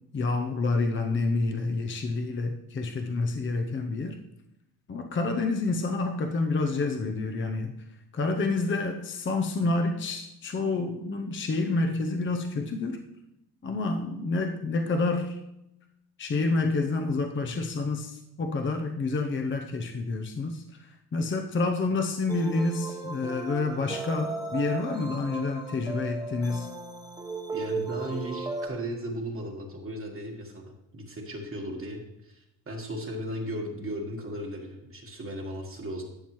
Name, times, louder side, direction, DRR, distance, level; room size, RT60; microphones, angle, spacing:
voice 1, 0.1-4.2 4.9-7.7 8.1-13.0 13.6-15.4 16.2-26.7, left 3 dB, 30° left, 4 dB, 0.6 m, -28 dB
sound 1, 22.3-28.7, right 3 dB, 10° right, 1.0 m, -36 dB
voice 2, 27.5-36.0, equal, 35° right, 1 dB, 1.4 m, -36 dB
12.0 x 7.1 x 3.1 m, 0.88 s
wide cardioid pair, 135°, 38 cm